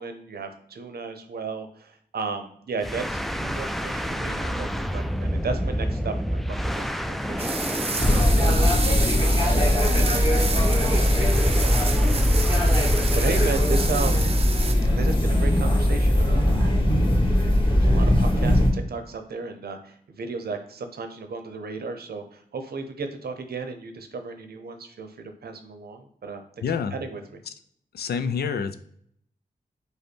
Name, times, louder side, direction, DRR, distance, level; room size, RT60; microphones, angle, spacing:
voice 1, 0.0-7.6 8.0-9.5 9.8-11.3 11.6-12.6 13.1-14.2 14.9-16.5 17.8-26.6 26.9-27.4, right 4 dB, 80° right, 7 dB, 0.7 m, -35 dB
sound 1, 2.8-13.3, equal, ahead, 0.3 m, -29 dB
sound 2, 7.4-14.7, right 4 dB, 40° right, 0.6 m, -31 dB
Athens underground, 8.0-18.7, left 1 dB, 30° left, 1.5 m, -20 dB
voice 2, 26.6-26.9 27.5-27.6 27.9-28.8, left 6 dB, 85° left, 11 dB, 0.4 m, -28 dB
5.2 x 2.2 x 4.5 m, 0.66 s
cardioid pair, 65°, 16 cm